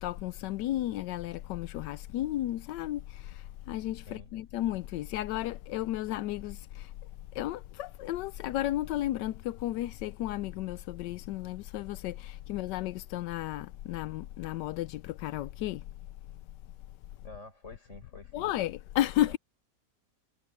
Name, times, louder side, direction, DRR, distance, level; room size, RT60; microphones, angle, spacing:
voice 1, 0.0-6.9 7.3-15.8 18.3-19.4, left 14 dB, 85° left, 1.2 m, -33 dB
voice 2, 17.2-18.5 19.2-19.4, left 2 dB, 40° left, 6.1 m, -48 dB
omnidirectional pair, 1.8 m